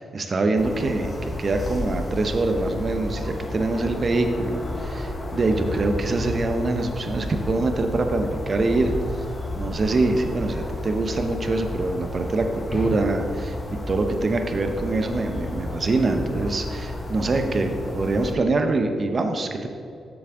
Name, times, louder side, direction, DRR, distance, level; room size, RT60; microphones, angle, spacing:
voice 1, 0.0-8.9 9.6-13.6 13.9-19.7, right 2 dB, 50° right, 6 dB, 0.8 m, -24 dB
sound 1, 0.6-18.3, left 1 dB, 40° left, 1.1 m, -32 dB
7.2 x 6.8 x 3.8 m, 2.6 s
supercardioid pair, 50°, 0 cm